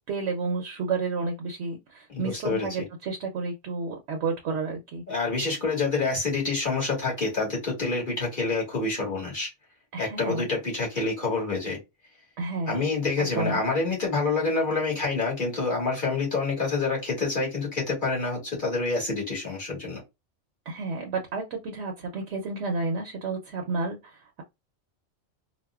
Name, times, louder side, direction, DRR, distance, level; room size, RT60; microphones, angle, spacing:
voice 1, 0.0-5.0 9.9-10.4 12.4-12.8 13.2-13.6 20.7-24.4, right 3 dB, 75° right, 0.9 m, -31 dB
voice 2, 2.1-2.8 5.1-9.5 10.0-11.8 12.7-20.0, left 3 dB, 45° left, 1.8 m, -27 dB
4.1 x 2.2 x 2.3 m
omnidirectional pair, 1.2 m